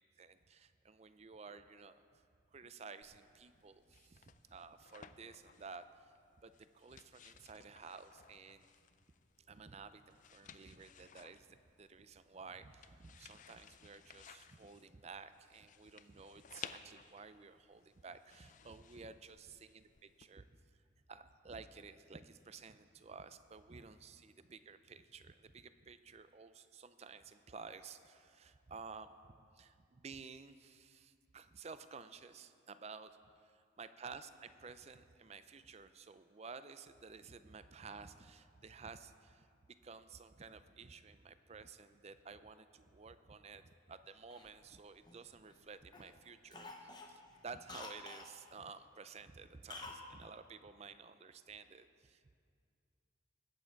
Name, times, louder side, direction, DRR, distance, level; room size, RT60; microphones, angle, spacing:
voice 1, 0.2-2.2 2.5-6.0 6.4-8.7 9.5-20.5 21.1-33.1 33.4-52.3, right 5 dB, 30° right, 12 dB, 0.4 m, -53 dB
sound 1, 3.0-20.3, left 8 dB, 40° left, 0.4 m, -58 dB
Cough, 44.3-45.6 45.9-46.2 46.5-48.3 49.7-50.1 50.3-50.4, left 3 dB, 20° left, 0.9 m, -50 dB
20.5 x 8.9 x 4.6 m, 2.3 s
head